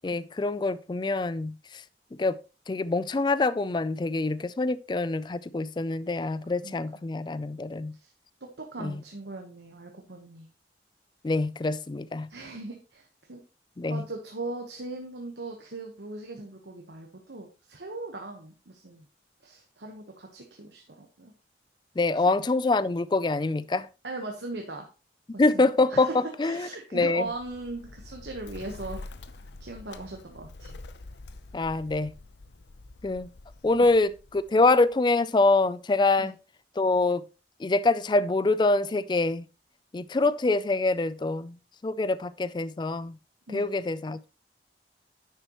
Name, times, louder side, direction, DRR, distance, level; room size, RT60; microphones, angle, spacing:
voice 1, 0.0-1.8 2.2-2.4 2.7-7.9 8.8-9.0 11.2-12.3 13.8-14.0 22.0-23.9 25.4-27.3 31.5-32.1 33.0-33.3 33.6-36.3 36.8-37.2 37.6-39.4 39.9-41.6 41.8-43.2 43.5-44.3, left 3 dB, 25° left, 0.3 m, -25 dB
voice 2, 6.6-7.0 7.9-8.1 8.6-10.5 12.3-13.4 13.9-19.1 19.4-21.3 22.2-22.3 24.0-24.9 25.3-26.1 26.4-29.1 29.6-30.8 33.7-33.9 36.2-36.3 43.5-43.7, right 2 dB, 85° right, 1.2 m, -39 dB
Bird, 27.2-35.0, left 2 dB, 80° left, 0.7 m, -46 dB
10.5 x 6.6 x 3.0 m
head